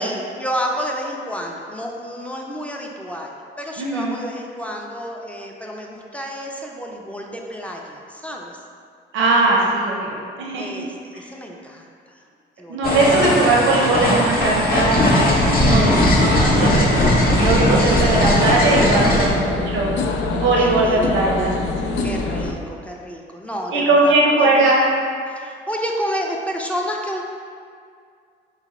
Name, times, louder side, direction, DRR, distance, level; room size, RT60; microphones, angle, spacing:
voice 1, 0.0-8.5 10.6-12.2 12.6-13.0 15.7-16.0 17.6-18.0 19.0-19.6 20.5-21.4 22.0-24.7 25.3-27.2, equal, 5° left, -1 dB, 0.4 m, -30 dB
voice 2, 3.8-4.1 9.1-10.7 11.1-11.2 12.7-15.0 15.5-21.6 21.8-22.1 23.7-24.8, right 2 dB, 75° right, -2 dB, 0.6 m, -19 dB
sound 1, 12.8-19.3, left 1 dB, 45° left, 0.7 m, -18 dB
sound 2, 14.2-22.5, left 3 dB, 80° left, 0.4 m, -25 dB
4.0 x 2.2 x 4.0 m, 2.2 s
cardioid pair, 90°, 20 cm